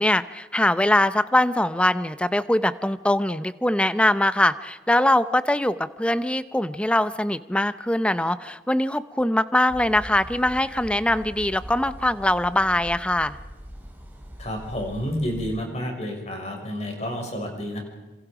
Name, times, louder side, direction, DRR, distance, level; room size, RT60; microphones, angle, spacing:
voice 1, 0.0-13.4, left 1 dB, 5° left, 13 dB, 0.8 m, -22 dB
sound 1, 9.7-15.6, equal, 10° right, 3.5 m, -41 dB
voice 2, 14.4-17.8, equal, 40° left, 3 dB, 6.0 m, -30 dB
27.0 x 27.0 x 5.1 m, 1.1 s
head